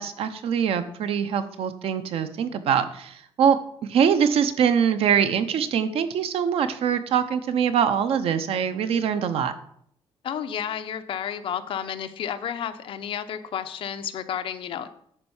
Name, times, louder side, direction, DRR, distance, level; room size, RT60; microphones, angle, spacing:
voice 1, 0.0-3.6 3.9-9.5, right 7 dB, 75° right, 10 dB, 0.8 m, -23 dB
voice 2, 10.2-14.9, left 9 dB, 65° left, 9 dB, 0.8 m, -31 dB
11.0 x 4.4 x 7.2 m, 0.68 s
wide cardioid pair, 170°, 10 cm